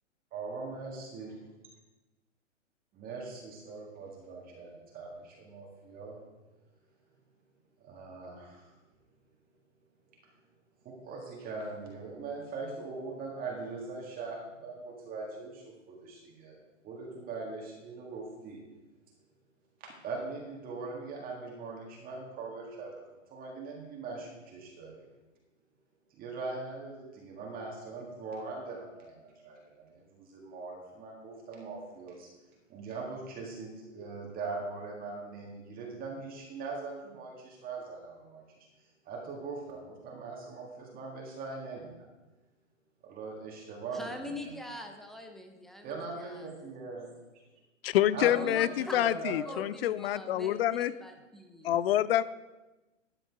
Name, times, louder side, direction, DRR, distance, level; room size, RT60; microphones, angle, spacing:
voice 1, 0.3-1.3 2.9-6.2 7.8-8.7 10.8-18.6 20.0-23.0 23.3-25.1 26.1-32.3 32.7-38.4 39.0-42.1 43.0-44.5 45.8-47.1 48.1-49.6, right 3 dB, 25° right, -1 dB, 1.9 m, -41 dB
voice 2, 43.9-46.5 48.3-49.2 49.5-51.8, left 1 dB, ahead, 4 dB, 0.6 m, -43 dB
voice 3, 47.8-50.9 51.6-52.2, left 12 dB, 50° left, 17 dB, 0.5 m, -27 dB
13.0 x 8.9 x 3.6 m, 1.1 s
hypercardioid pair, 125°, 38 cm